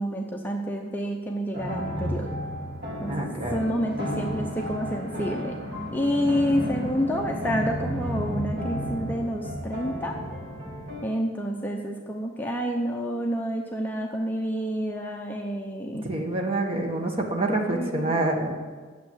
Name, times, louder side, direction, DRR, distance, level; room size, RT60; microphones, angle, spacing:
voice 1, 0.0-2.3 3.0-5.5 5.9-10.1 11.0-16.1 17.7-18.6, equal, 10° left, 0 dB, 0.7 m, -29 dB
sound 1, 1.5-11.0, equal, 55° right, 2.0 m, -32 dB
voice 2, 3.1-3.6 16.0-18.6, right 2 dB, 30° right, 1 dB, 1.5 m, -27 dB
9.2 x 7.4 x 8.5 m, 1.5 s
head